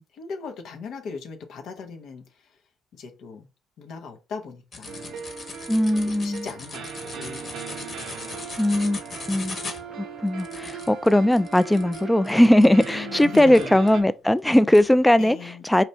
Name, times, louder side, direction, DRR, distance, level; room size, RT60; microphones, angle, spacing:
voice 1, 0.1-2.5 2.9-3.5 3.8-5.2 6.2-7.6 12.9-13.7 15.2-15.6, left 5 dB, 65° left, 0.7 m, -38 dB
sound 1, 4.7-14.0 14.5-14.9, left 3 dB, 45° left, 1.1 m, -39 dB
sound 2, 4.9-14.0, right 6 dB, 65° right, 0.5 m, -38 dB
voice 2, 5.7-6.5 8.6-9.0 9.3-9.6 10.0-15.8, left 1 dB, 10° left, 0.3 m, -19 dB
4.3 x 2.5 x 3.2 m
hypercardioid pair, 50°, 0 cm